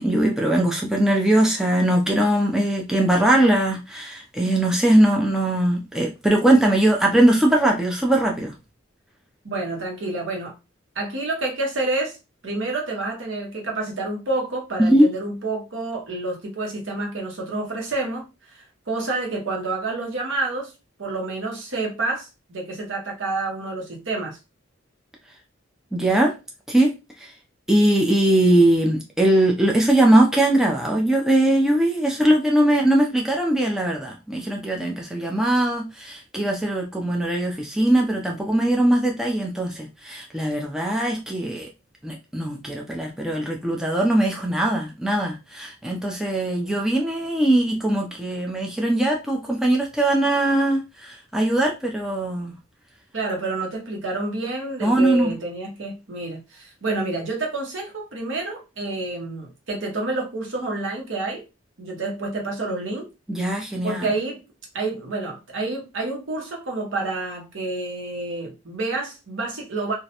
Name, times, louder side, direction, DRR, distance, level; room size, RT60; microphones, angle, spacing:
voice 1, 0.0-8.5 14.8-15.1 25.9-26.3 26.7-26.9 27.2-27.3 27.7-41.7 42.0-52.5 54.8-55.3 63.3-64.1, right 1 dB, 5° right, 0.3 m, -20 dB
voice 2, 9.4-10.5 10.9-12.2 12.4-20.7 21.0-24.4 53.1-61.4 61.8-63.1 63.8-64.4 64.7-69.9, right 2 dB, 70° right, 0.8 m, -28 dB
2.4 x 2.0 x 2.7 m
head